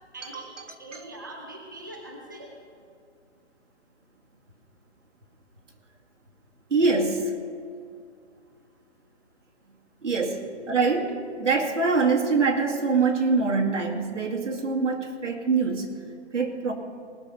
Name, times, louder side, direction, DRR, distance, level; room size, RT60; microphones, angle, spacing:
voice 1, 0.1-0.5 0.8-2.5, right 1 dB, 15° right, 0 dB, 0.6 m, -42 dB
voice 2, 6.7-7.3 10.0-15.9 16.3-16.7, right 4 dB, 85° right, 1 dB, 2.3 m, -24 dB
19.0 x 6.6 x 5.6 m, 2.2 s
hypercardioid pair, 175°, 36 cm